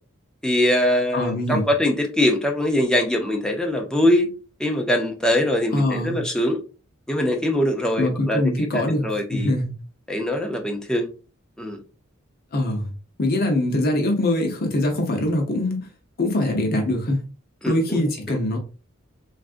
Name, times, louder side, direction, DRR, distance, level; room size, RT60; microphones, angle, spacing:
voice 1, 0.4-4.3 4.6-6.6 7.1-9.5 10.1-11.1 11.6-11.8 17.6-18.4, left 1 dB, 5° left, 0.5 m, -22 dB
voice 2, 1.1-1.7 5.7-6.2 8.0-9.0 9.3-9.7 12.5-12.9 13.2-15.9 16.2-17.2 17.7-18.6, left 1 dB, 45° left, 0.7 m, -23 dB
3.4 x 2.5 x 2.4 m
head